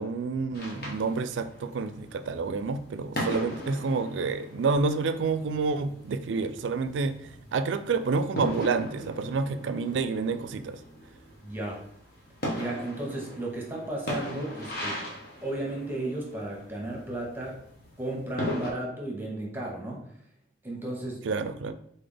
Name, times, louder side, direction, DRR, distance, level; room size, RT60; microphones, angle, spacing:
voice 1, 0.0-10.8 21.2-21.7, right 4 dB, 90° right, 11 dB, 0.4 m, -29 dB
sound 1, 0.5-18.7, left 1 dB, 60° left, 1.2 m, -39 dB
voice 2, 11.4-11.8 12.5-15.0 15.4-17.6 18.0-20.0 20.6-21.3, right 1 dB, 10° right, -2 dB, 1.1 m, -34 dB
3.9 x 3.4 x 3.9 m, 0.69 s
head